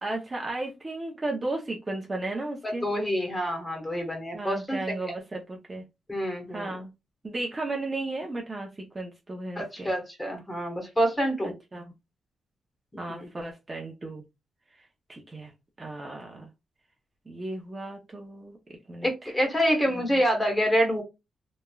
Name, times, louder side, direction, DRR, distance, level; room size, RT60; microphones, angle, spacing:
voice 1, 0.0-2.9 4.3-5.8 6.2-6.9 7.2-9.9 11.7-11.9 13.0-14.2 15.1-15.5 15.8-16.5 17.3-19.3 19.9-20.2, right 2 dB, 25° right, 0 dB, 0.6 m, -35 dB
voice 2, 2.6-5.1 6.1-6.8 9.6-11.5 13.1-13.3 19.0-21.0, equal, 15° left, 3 dB, 1.0 m, -27 dB
3.0 x 2.3 x 2.2 m, 0.23 s
cardioid pair, 125°, 0 cm